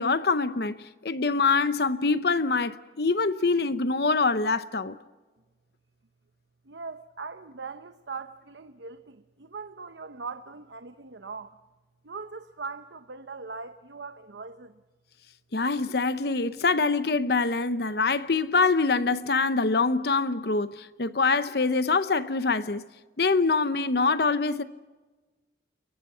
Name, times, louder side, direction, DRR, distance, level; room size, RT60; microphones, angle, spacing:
voice 1, 0.0-5.0 15.5-22.8 23.2-24.6, left 4 dB, 60° left, 0.8 m, -25 dB
voice 2, 6.7-11.6 12.0-14.8, right 4 dB, 75° right, 0.9 m, -40 dB
29.5 x 23.0 x 5.7 m
head